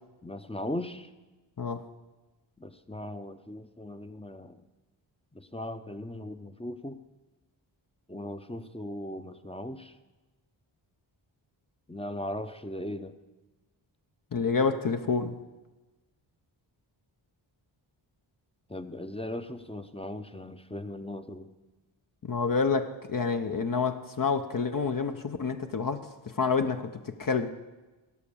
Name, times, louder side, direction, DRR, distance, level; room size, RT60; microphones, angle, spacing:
voice 1, 0.2-1.1 2.6-4.6 5.3-7.0 8.1-9.9 11.9-13.1 18.7-21.5, left 1 dB, 10° left, 9 dB, 0.7 m, -38 dB
voice 2, 14.3-15.4 22.2-27.5, left 5 dB, 45° left, 7 dB, 0.8 m, -28 dB
17.0 x 6.0 x 7.1 m, 1.2 s
cardioid pair, 55°, 48 cm